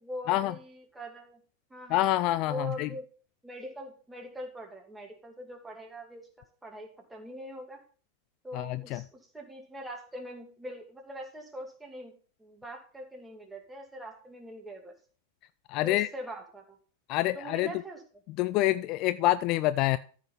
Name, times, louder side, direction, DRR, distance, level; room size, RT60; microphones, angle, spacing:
voice 1, 0.0-1.4 1.7-2.0 2.4-3.1 3.4-6.3 6.6-7.8 8.4-12.1 12.4-14.9 15.8-16.8 17.3-18.0, equal, 5° right, 2 dB, 2.3 m, -42 dB
voice 2, 1.9-2.9 8.6-8.7 8.9-9.0 15.7-16.1 17.1-17.7 18.4-20.0, left 15 dB, 40° left, 15 dB, 0.3 m, -26 dB
14.0 x 5.8 x 3.9 m, 0.41 s
figure-of-eight pair, 90°, 0 cm